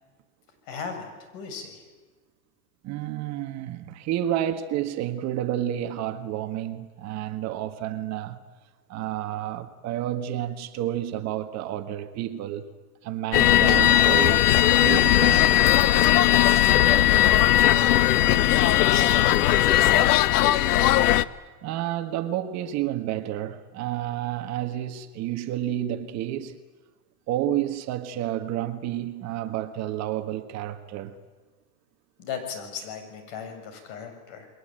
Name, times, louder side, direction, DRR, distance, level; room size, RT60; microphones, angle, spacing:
voice 1, 0.7-1.8 16.5-20.0 20.4-20.8 32.2-34.5, left 6 dB, 50° left, 7.1 m, -38 dB
voice 2, 2.8-8.4 8.9-12.7 13.0-14.5 14.7-15.7 21.6-26.6 27.3-31.1, right 12 dB, 35° right, 1.6 m, -30 dB
sound 1, 13.3-21.2, left 13 dB, 80° left, 1.1 m, -18 dB
29.5 x 22.0 x 9.1 m
supercardioid pair, 145°, 46 cm